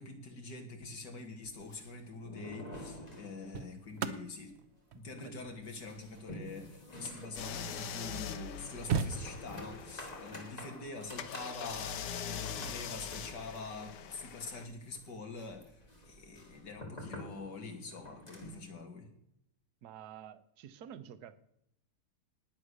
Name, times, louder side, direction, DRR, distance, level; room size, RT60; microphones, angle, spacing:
voice 1, 0.0-4.5 4.9-19.1, left 3 dB, 50° left, 4 dB, 3.0 m, -45 dB
sound 1, 1.4-4.1 4.5-4.6 5.0-18.7, left 1 dB, 20° left, 2.7 m, -50 dB
sound 2, 1.9-2.2 3.1-7.7 8.2-8.3 8.5-9.8 11.5-11.7, right 6 dB, 90° right, 0.5 m, -39 dB
sound 3, 7.4-10.6 11.2-14.7, left 7 dB, 85° left, 2.0 m, -42 dB
voice 2, 19.8-21.4, right 9 dB, 55° right, 12 dB, 1.3 m, -49 dB
19.5 x 7.8 x 6.5 m, 0.76 s
omnidirectional pair, 2.4 m